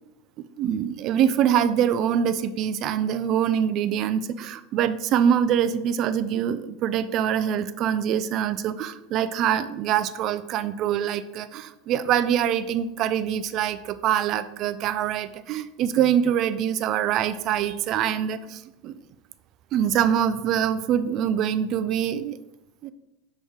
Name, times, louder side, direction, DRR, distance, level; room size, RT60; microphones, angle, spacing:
voice 1, 0.6-18.9 19.7-22.4 22.8-22.9, right 9 dB, 40° right, 13 dB, 0.3 m, -24 dB
6.3 x 3.1 x 5.0 m, 0.92 s
supercardioid pair, 150°, 0 cm